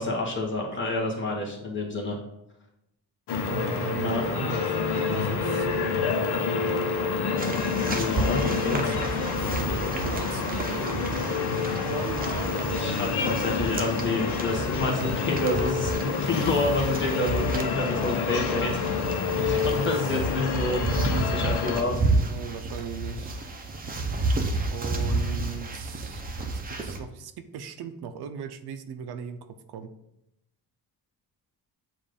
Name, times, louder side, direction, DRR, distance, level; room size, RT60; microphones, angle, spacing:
voice 1, 0.0-2.2 4.0-4.4 7.8-8.8 12.7-19.0 19.3-22.0, left 2 dB, 30° left, -1 dB, 1.1 m, -29 dB
sound 1, 3.3-21.8, left 5 dB, 90° left, 0.9 m, -28 dB
voice 2, 3.5-4.7 4.9-5.9 8.7-13.0 19.2-19.9 22.2-23.4 24.7-26.2 26.5-29.9, right 7 dB, 80° right, 9 dB, 0.6 m, -38 dB
sound 2, 7.4-27.0, right 2 dB, 25° right, 0.6 m, -31 dB
7.4 x 2.6 x 5.0 m, 0.86 s
wide cardioid pair, 155°, 38 cm